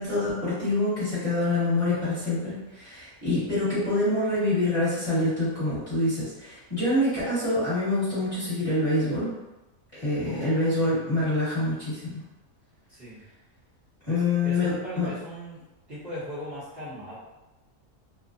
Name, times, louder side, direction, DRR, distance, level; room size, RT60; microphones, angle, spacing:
voice 1, 0.0-9.3 10.0-12.1 14.1-15.1, left 2 dB, 25° left, -12 dB, 1.2 m, -26 dB
voice 2, 10.2-11.1 12.9-13.2 14.1-17.1, left 1 dB, 45° right, -12 dB, 1.0 m, -40 dB
2.9 x 2.1 x 2.5 m, 1.0 s
omnidirectional pair, 1.6 m